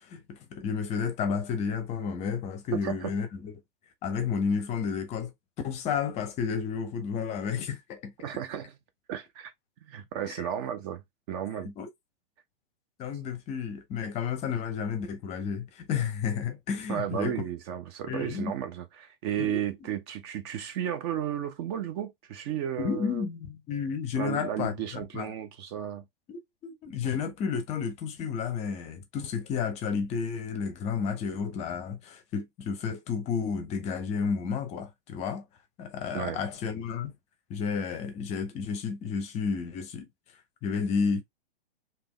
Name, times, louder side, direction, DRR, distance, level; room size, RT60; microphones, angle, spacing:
voice 1, 0.0-3.5 4.0-5.3 5.6-8.1 10.2-10.3 11.8-11.9 13.0-17.3 18.1-18.5 19.4-19.6 22.8-25.3 26.3-35.4 35.8-37.1 37.5-40.1 40.6-41.2, left 6 dB, 20° left, 0.7 m, -31 dB
voice 2, 2.7-3.1 8.2-8.8 9.1-9.5 9.9-11.0 11.3-11.7 16.9-23.3 24.2-26.0 36.1-36.4, right 10 dB, 25° right, 0.5 m, -33 dB
3.4 x 2.8 x 3.1 m
figure-of-eight pair, 105°, 30 cm